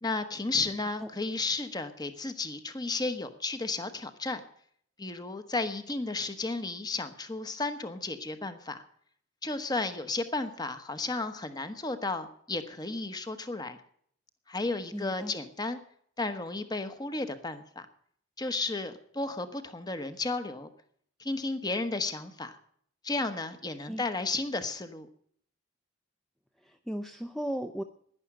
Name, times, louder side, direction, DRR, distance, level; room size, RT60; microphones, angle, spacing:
voice 1, 0.0-4.4 5.0-8.8 9.4-13.8 14.5-15.8 16.2-17.8 18.4-20.7 21.2-22.6 23.0-25.1, left 3 dB, 20° left, 9 dB, 1.1 m, -33 dB
voice 2, 14.9-15.3 23.9-24.0 26.6-27.8, equal, ahead, 6 dB, 0.6 m, -36 dB
11.0 x 10.5 x 8.7 m, 0.62 s
head